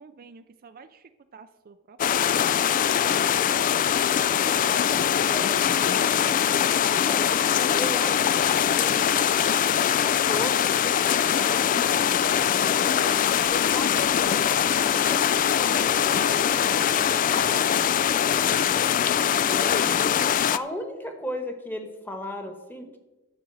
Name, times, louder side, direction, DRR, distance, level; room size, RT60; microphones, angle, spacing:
voice 1, 0.0-2.8 3.4-4.3, right 4 dB, 45° right, 10 dB, 0.4 m, -50 dB
sound 1, 2.0-20.6, left 9 dB, 40° left, 0.3 m, -22 dB
voice 2, 4.9-9.3 9.9-12.3 12.6-13.1 13.5-14.5 14.8-17.7 19.5-23.0, equal, 10° left, 5 dB, 1.2 m, -37 dB
sound 2, 13.0-16.8, right 7 dB, 80° right, 0.9 m, -49 dB
11.0 x 5.1 x 7.7 m, 1.1 s
head